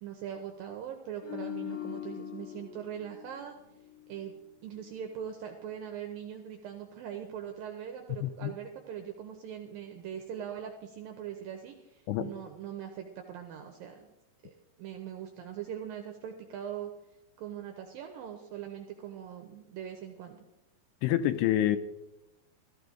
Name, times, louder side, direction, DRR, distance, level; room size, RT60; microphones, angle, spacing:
voice 1, 0.0-3.6 4.1-4.3 4.6-14.1 14.4-16.9 17.4-20.4, right 9 dB, 80° right, 4 dB, 2.1 m, -41 dB
sound 1, 1.2-4.5 4.8-5.0, left 12 dB, 65° left, 2.5 m, -42 dB
voice 2, 8.2-8.5 12.1-12.3 21.0-21.8, left 12 dB, 85° left, 13 dB, 2.4 m, -27 dB
15.0 x 14.5 x 3.8 m, 0.95 s
omnidirectional pair, 5.2 m